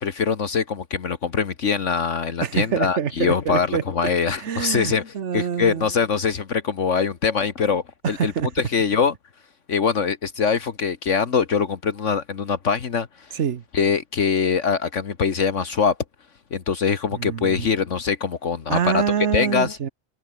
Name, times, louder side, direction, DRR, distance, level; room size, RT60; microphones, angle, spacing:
voice 1, 0.0-8.3 8.7-9.1 9.7-13.3 13.7-16.0 16.5-19.0 19.3-19.8, left 6 dB, 70° left, 1.7 m, -23 dB
voice 2, 2.4-3.8 4.4-5.9 8.0-8.5 13.3-13.6 17.2-17.7 18.7-19.9, right 8 dB, 65° right, 1.3 m, -25 dB
omnidirectional pair, 1.3 m